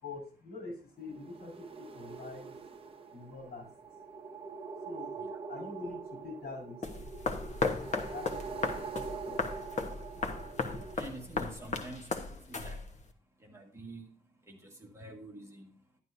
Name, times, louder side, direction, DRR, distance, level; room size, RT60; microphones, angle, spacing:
voice 1, 0.0-2.6 3.1-3.7 4.8-5.1 5.5-6.8 8.1-8.5 9.0-9.6, left 3 dB, 70° left, 2 dB, 4.9 m, -45 dB
sound 1, 1.0-10.9, right 5 dB, 35° right, 0.8 m, -43 dB
sound 2, 6.8-13.1, left 4 dB, 45° left, 1.1 m, -36 dB
voice 2, 10.9-12.8 13.4-14.1 14.5-15.7, right 2 dB, 15° right, 0 dB, 1.8 m, -47 dB
11.5 x 11.0 x 2.7 m, 0.34 s
wide cardioid pair, 170°, 16 cm